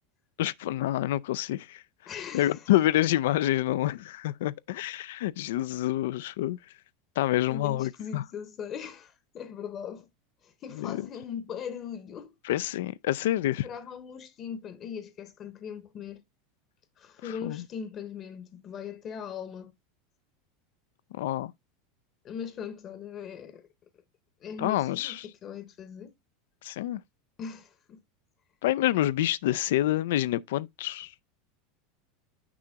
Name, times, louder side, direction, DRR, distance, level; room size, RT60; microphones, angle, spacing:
voice 1, 0.4-1.8 2.3-6.6 7.2-8.2 10.8-11.0 12.4-13.7 17.2-17.6 21.1-21.5 24.6-25.3 26.6-27.0 28.6-31.2, left 14 dB, 80° left, 0.3 m, -27 dB
voice 2, 2.1-2.7 7.5-10.1 10.4-12.3 13.6-16.2 17.0-19.7 22.2-23.7 24.4-26.1 27.4-28.0, left 7 dB, 35° left, 0.8 m, -40 dB
6.1 x 2.8 x 5.6 m
supercardioid pair, 135°, 0 cm